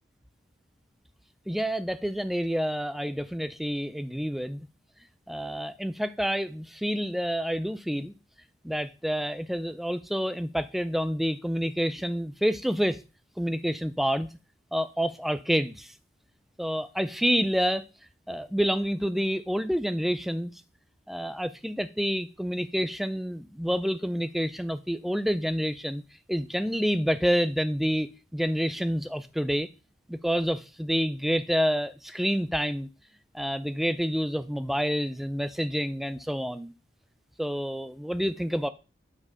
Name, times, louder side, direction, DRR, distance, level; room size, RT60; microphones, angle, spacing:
voice 1, 1.5-4.7 5.3-8.1 8.6-13.0 13.4-14.3 14.7-15.9 16.6-17.8 18.3-20.5 21.1-26.0 26.3-29.7 30.1-32.9 33.3-36.7 37.4-38.7, equal, ahead, 0.4 m, -28 dB
9.8 x 4.5 x 5.0 m
head